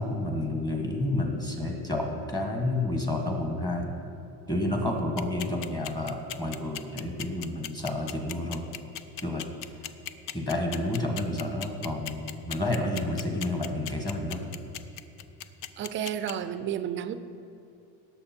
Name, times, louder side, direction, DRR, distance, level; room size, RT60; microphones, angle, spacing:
voice 1, 0.0-3.9 4.5-8.7 9.2-9.4 10.3-14.4, left 1 dB, 10° left, 2 dB, 1.4 m, -30 dB
sound 1, 5.0-16.3, left 12 dB, 60° left, 0.6 m, -37 dB
voice 2, 15.8-17.1, right 10 dB, 35° right, 12 dB, 0.4 m, -31 dB
17.5 x 6.5 x 4.4 m, 2.9 s
cardioid pair, 155°, 36 cm